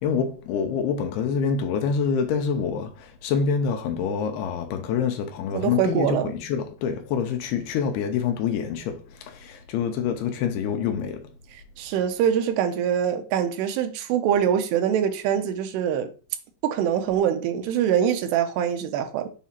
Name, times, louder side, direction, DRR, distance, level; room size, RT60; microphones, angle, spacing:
voice 1, 0.0-11.3, left 6 dB, 80° left, 2.7 m, -26 dB
voice 2, 5.5-6.3 11.8-16.1 16.6-19.3, right 9 dB, 80° right, 2.8 m, -24 dB
7.2 x 2.7 x 5.7 m
omnidirectional pair, 4.9 m